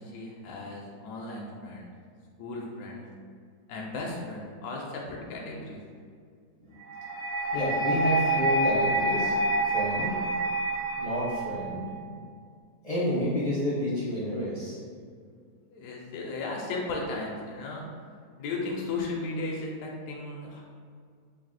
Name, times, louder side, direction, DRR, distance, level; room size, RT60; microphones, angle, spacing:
voice 1, 0.0-1.9 2.4-3.1 3.7-5.8 15.7-17.8 18.4-20.6, left 3 dB, 75° left, -2 dB, 1.1 m, -35 dB
sound 1, 6.9-11.9, right 2 dB, 65° right, 1.5 m, -27 dB
voice 2, 7.5-9.3 9.7-10.2 11.0-11.8 12.8-14.8, equal, 30° left, -8 dB, 0.7 m, -29 dB
3.3 x 2.7 x 4.0 m, 2.1 s
omnidirectional pair, 1.8 m